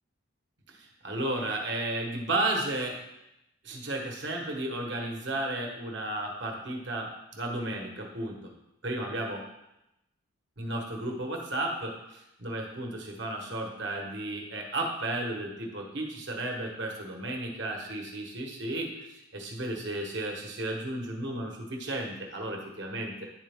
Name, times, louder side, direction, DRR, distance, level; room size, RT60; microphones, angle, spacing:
voice 1, 0.7-3.0 3.6-8.5 8.8-9.4 10.6-23.3, right 1 dB, 60° right, 1 dB, 1.2 m, -33 dB
10.0 x 4.2 x 3.5 m, 0.88 s
head